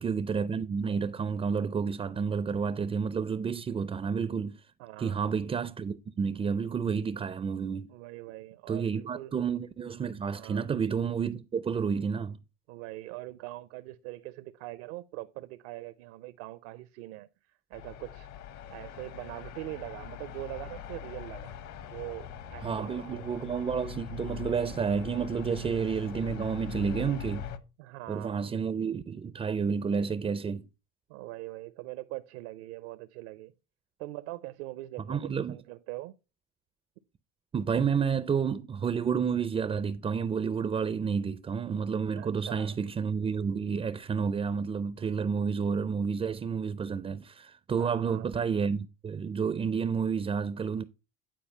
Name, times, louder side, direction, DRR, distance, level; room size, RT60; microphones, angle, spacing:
voice 1, 0.0-4.6 5.0-7.9 8.7-12.4 22.6-27.5 28.1-30.7 35.1-35.6 37.5-50.8, right 6 dB, 15° right, 0.4 m, -30 dB
voice 2, 4.8-5.3 7.9-9.3 10.3-10.7 12.7-17.3 17.7-18.3 18.7-21.6 21.9-23.3 27.8-28.5 31.1-33.5 34.0-36.1 42.1-42.8 47.7-48.3, right 18 dB, 75° right, 0.6 m, -42 dB
sound 1, 17.7-27.6, left 9 dB, 55° left, 1.1 m, -42 dB
9.4 x 4.2 x 5.3 m
supercardioid pair, 95°, 35 cm